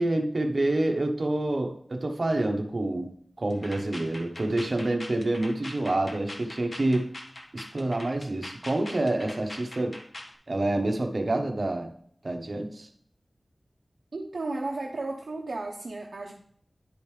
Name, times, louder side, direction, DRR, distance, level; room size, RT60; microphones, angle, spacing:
voice 1, 0.0-7.1 7.5-10.0 10.5-11.9 12.2-12.9, right 2 dB, 60° right, 4 dB, 1.1 m, -27 dB
sound 1, 3.5-10.3, left 1 dB, 55° left, 1.5 m, -42 dB
voice 2, 14.1-16.3, right 2 dB, 75° right, 0 dB, 0.8 m, -34 dB
10.0 x 5.2 x 3.3 m, 0.62 s
wide cardioid pair, 60°, 0 cm